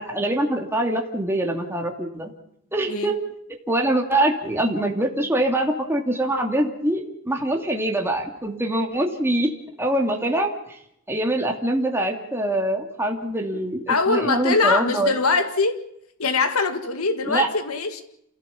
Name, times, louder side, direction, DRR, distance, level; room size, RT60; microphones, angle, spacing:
voice 1, 0.0-2.3 2.7-3.2 3.7-9.5 9.8-10.5 11.1-15.1 17.3-17.5, right 1 dB, 10° right, 1 dB, 2.6 m, -24 dB
voice 2, 13.9-15.8 16.2-18.0, left 4 dB, 85° left, 8 dB, 2.0 m, -22 dB
28.5 x 16.5 x 7.2 m, 0.77 s
head